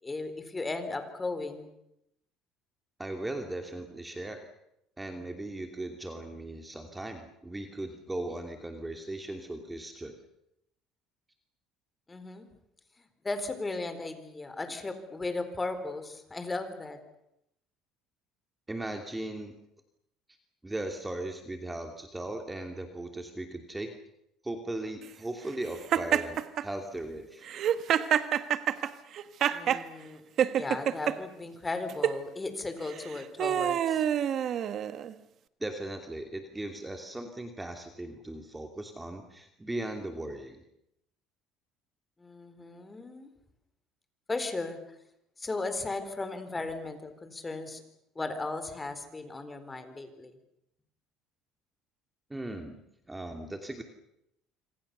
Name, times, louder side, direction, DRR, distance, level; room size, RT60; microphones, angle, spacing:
voice 1, 0.0-1.7 12.1-12.5 13.0-17.0 29.5-30.2 30.5-34.0 42.2-43.3 44.3-44.8 45.4-47.8 48.2-50.3, left 3 dB, 15° left, 9 dB, 4.2 m, -36 dB
voice 2, 3.0-4.5 5.0-10.1 18.7-19.6 20.6-23.9 24.4-27.5 35.6-40.6 52.3-52.8 53.1-53.8, right 1 dB, 10° right, 4 dB, 2.7 m, -38 dB
Laughter, 25.9-26.6 27.5-29.8 30.4-31.1 31.9-32.2 32.9-35.1, right 10 dB, 50° right, 1.5 m, -27 dB
26.5 x 26.0 x 7.0 m, 0.80 s
cardioid pair, 110°, 0 cm